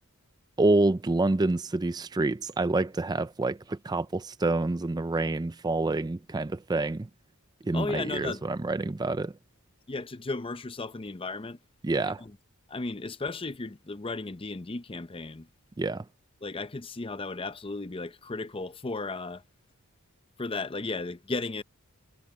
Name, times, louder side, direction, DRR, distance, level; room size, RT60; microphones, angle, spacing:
voice 1, 0.6-7.1 7.6-9.3 11.8-12.2 15.8-16.0, right 2 dB, 20° right, 0.4 m, -27 dB
voice 2, 7.7-8.5 9.9-11.6 12.2-12.4 12.7-15.5 16.4-19.4 20.4-21.6, left 3 dB, 25° left, 0.6 m, -35 dB
head